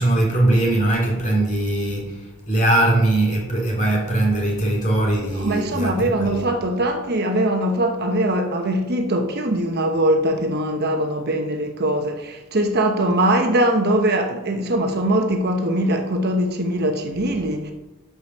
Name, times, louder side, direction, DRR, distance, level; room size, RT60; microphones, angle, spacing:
voice 1, 0.0-6.6, right 1 dB, 35° left, 2.7 m, -21 dB
voice 2, 5.3-17.7, right 1 dB, 45° right, 1.0 m, -21 dB
12.0 x 5.0 x 5.5 m
head